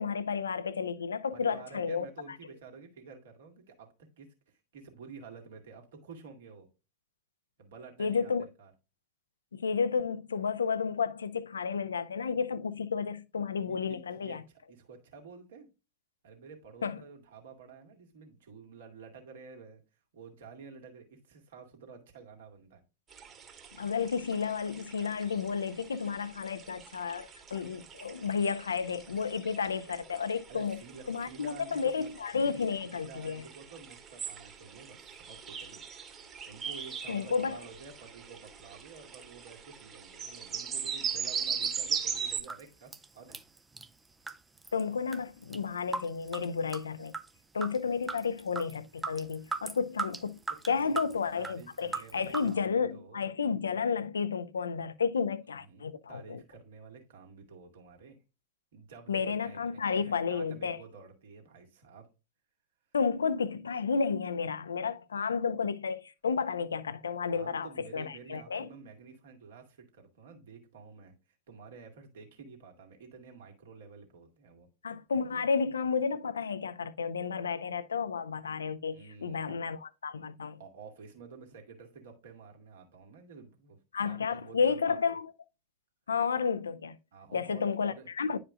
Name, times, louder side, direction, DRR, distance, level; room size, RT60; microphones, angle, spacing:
voice 1, 0.0-2.1 8.0-8.5 9.5-14.4 16.8-17.0 23.8-30.8 31.1-33.4 37.1-37.6 44.7-47.1 47.5-50.4 50.7-56.4 59.1-60.8 62.9-68.7 74.8-80.6 83.9-85.3 86.1-87.0 87.3-88.4, left 5 dB, 70° left, 0.5 m, -32 dB
voice 2, 1.3-6.7 7.6-8.7 13.3-15.7 16.2-19.8 20.1-22.8 30.5-32.1 32.8-35.8 36.5-43.4 50.5-51.0 51.4-53.3 55.5-58.2 58.7-62.1 67.3-71.1 71.5-74.7 78.9-79.6 80.6-85.1 87.1-88.1, right 5 dB, 60° right, 2.0 m, -51 dB
sound 1, 23.1-42.4, right 7 dB, 25° right, 1.6 m, -40 dB
sound 2, 42.4-42.6 42.9-43.9 44.3-44.8 45.1-45.6 45.9-47.3 47.6-47.8 48.0-52.5, right 4 dB, 10° right, 0.5 m, -38 dB
10.5 x 5.0 x 2.4 m
figure-of-eight pair, 90°, 0 cm